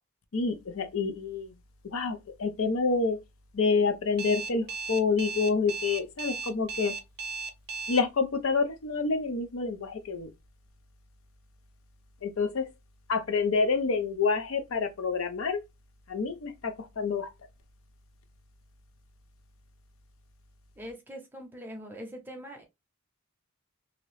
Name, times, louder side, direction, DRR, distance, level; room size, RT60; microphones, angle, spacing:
voice 1, 0.3-1.5 1.9-3.2 3.5-6.9 7.9-10.3 12.2-12.6 13.1-15.6 16.1-17.3, left 4 dB, 65° left, 0.5 m, -28 dB
Alarm, 4.2-8.0, right 4 dB, 45° right, 0.5 m, -35 dB
voice 2, 20.8-22.6, equal, 10° right, 0.7 m, -42 dB
2.8 x 2.6 x 3.1 m
head